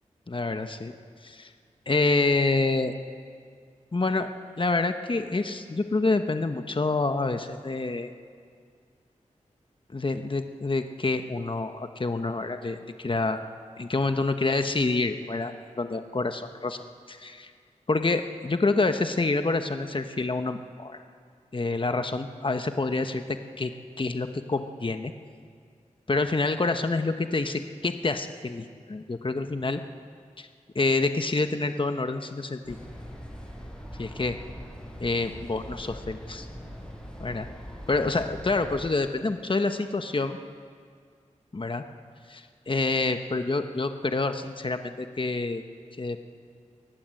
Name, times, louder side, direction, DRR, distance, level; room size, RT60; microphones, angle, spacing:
voice 1, 0.3-0.9 1.2-1.5 1.9-2.9 3.9-4.3 4.6-8.1 9.9-13.4 13.8-16.8 17.1-17.5 17.9-21.0 21.5-23.7 24.0-25.1 26.1-29.8 30.4-30.5 30.7-32.8 34.0-34.4 35.0-36.5 37.2-37.5 37.9-40.4 41.5-41.8 42.3-45.6 46.0-46.2, left 3 dB, 40° left, 7 dB, 1.1 m, -27 dB
sound 1, 32.6-38.9, equal, 5° left, 6.8 m, -41 dB
24.0 x 17.5 x 7.7 m, 2.1 s
cardioid pair, 45°, 13 cm